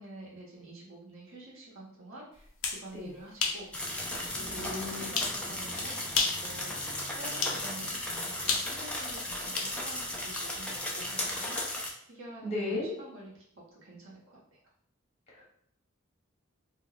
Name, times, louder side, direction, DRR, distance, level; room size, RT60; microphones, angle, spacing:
voice 1, 0.0-3.7 4.3-6.0 6.4-13.3 13.7-14.6, right 1 dB, 70° right, -5 dB, 1.0 m, -48 dB
sound 1, 2.4-2.8 3.4-3.6 4.1-4.2 5.2-5.4 6.1-6.5 7.4-7.6 8.5-9.7, left 5 dB, 70° left, 0.5 m, -30 dB
sound 2, 3.7-11.9, left 1 dB, 5° left, 0.4 m, -36 dB
voice 2, 4.5-5.0 5.4-5.5 12.4-12.9 15.3-15.4, left 2 dB, 35° left, -5 dB, 1.0 m, -35 dB
2.3 x 2.1 x 3.8 m, 0.68 s
head